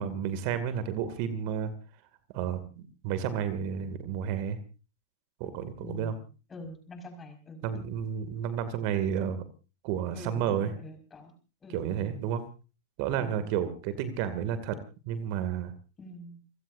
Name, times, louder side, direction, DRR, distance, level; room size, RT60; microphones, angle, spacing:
voice 1, 0.0-1.7 2.3-4.6 5.4-6.1 7.6-9.4 9.8-10.7 11.7-12.4 13.0-14.8 15.1-15.7, right 9 dB, 55° right, 11 dB, 2.4 m, -31 dB
voice 2, 5.8-7.7 10.1-11.3 11.6-12.2 13.1-13.4 16.0-16.4, left 2 dB, 20° left, 5 dB, 5.4 m, -45 dB
29.5 x 16.0 x 2.7 m, 0.34 s
hypercardioid pair, 105°, 0 cm